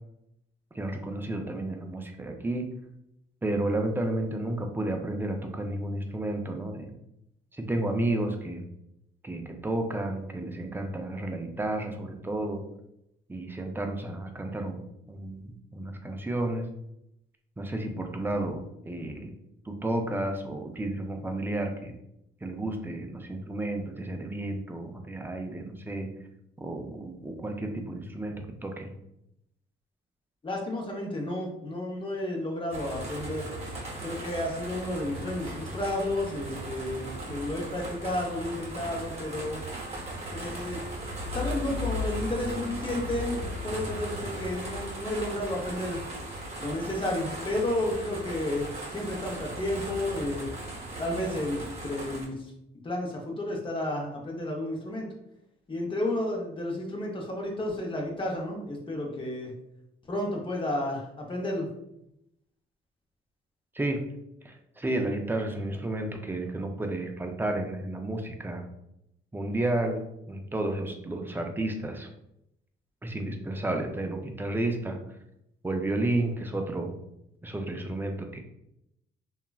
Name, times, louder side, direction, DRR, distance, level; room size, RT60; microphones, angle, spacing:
voice 1, 0.7-2.7 3.4-6.9 7.5-8.6 9.2-12.6 13.3-16.7 17.6-19.3 19.7-21.9 22.4-26.1 26.6-28.3 28.6-28.9 63.7-64.0 64.4-68.6 69.3-70.0 70.3-72.1 73.0-75.0 75.6-76.9 77.4-78.4, right 1 dB, 10° right, 4 dB, 0.4 m, -32 dB
voice 2, 30.4-33.5 34.0-39.6 40.3-40.8 41.3-46.0 46.6-50.5 51.0-52.4 52.8-55.1 55.7-59.5 60.1-61.7, left 1 dB, 25° left, 0 dB, 0.7 m, -32 dB
sound 1, 32.7-52.3, equal, 30° right, 0.9 m, -37 dB
2.9 x 2.3 x 2.2 m, 0.82 s
cardioid pair, 90°, 20 cm